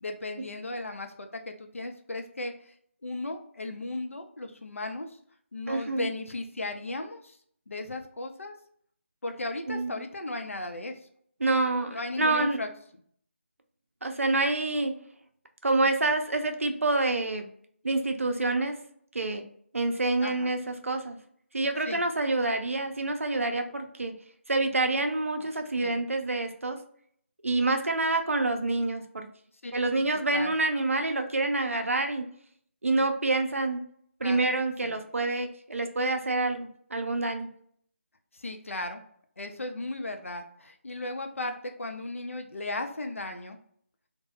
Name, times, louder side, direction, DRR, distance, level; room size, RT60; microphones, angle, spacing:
voice 1, 0.0-2.7 3.0-5.1 5.5-7.4 7.7-8.5 9.2-10.9 11.9-12.7 20.2-20.5 21.8-22.0 25.8-26.0 29.6-29.7 30.3-30.5 34.2-34.5 34.8-35.0 38.3-39.0 39.4-43.6, left 2 dB, 85° left, 5 dB, 0.5 m, -36 dB
voice 2, 5.7-6.1 9.7-9.9 11.4-12.6 14.0-14.9 15.6-17.5 17.8-18.7 19.1-19.5 19.7-21.2 21.5-24.1 24.5-26.8 27.4-29.3 29.7-32.3 32.8-33.8 34.2-37.5, right 2 dB, 85° right, 5 dB, 0.5 m, -27 dB
2.1 x 2.0 x 2.9 m, 0.63 s
figure-of-eight pair, 160°, 7 cm